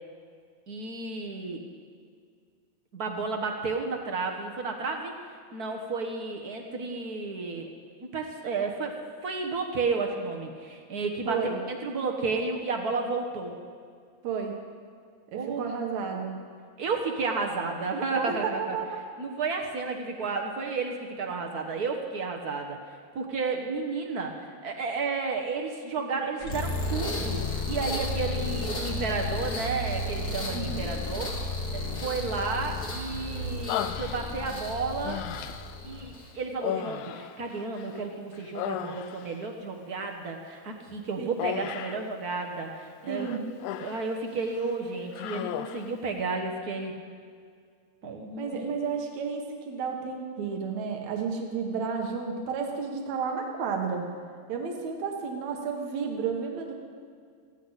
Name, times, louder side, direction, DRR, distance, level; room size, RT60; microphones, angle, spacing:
voice 1, 0.7-1.6 2.9-5.1 5.5-7.7 8.1-11.4 11.7-13.6 15.3-15.7 16.8-18.8 19.2-22.8 23.1-31.3 31.7-35.2 35.8-43.3 43.8-46.9 48.0-48.5, right 4 dB, 55° right, 2 dB, 1.1 m, -32 dB
voice 2, 11.3-11.6 14.2-14.6 15.3-16.4 18.3-19.0 30.5-30.9 41.2-41.4 43.1-43.4 48.4-54.0 54.5-56.7, right 5 dB, 75° right, 2 dB, 2.7 m, -32 dB
sound 1, 26.4-36.4, left 2 dB, 40° left, 1.9 m, -33 dB
Human voice, 33.7-34.6 35.0-35.8 36.6-38.0 38.3-39.4 41.4-42.1 43.1-44.1 44.5-44.7 45.1-45.9, left 10 dB, 90° left, 2.0 m, -35 dB
18.5 x 15.5 x 4.1 m, 2.1 s
omnidirectional pair, 3.3 m